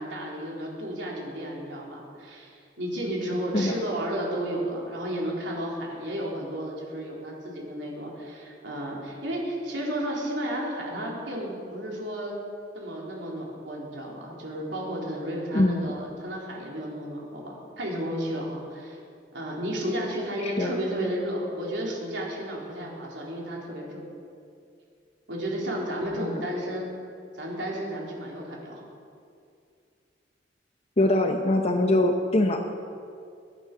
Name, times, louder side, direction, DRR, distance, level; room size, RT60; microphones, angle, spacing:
voice 1, 0.0-12.4 12.7-19.0 19.3-24.0 25.3-26.9 27.3-28.8, equal, 80° right, -3 dB, 3.9 m, -32 dB
voice 2, 15.5-15.9 20.4-20.7 26.2-26.4 31.0-32.7, left 1 dB, 35° left, 4 dB, 0.8 m, -23 dB
22.0 x 9.3 x 6.2 m, 2.4 s
head